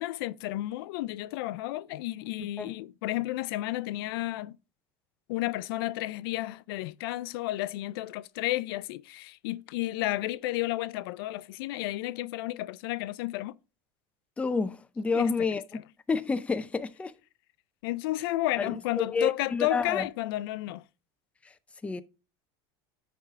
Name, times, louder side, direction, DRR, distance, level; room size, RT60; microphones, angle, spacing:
voice 1, 0.0-4.6 5.3-13.5 15.1-15.8 17.8-20.8, left 17 dB, 75° left, 0.4 m, -32 dB
voice 2, 14.4-15.6 16.1-17.1 18.6-18.7 19.0-20.0 21.8-22.0, left 4 dB, 10° left, 0.4 m, -29 dB
10.0 x 3.5 x 3.5 m
supercardioid pair, 130°, 12 cm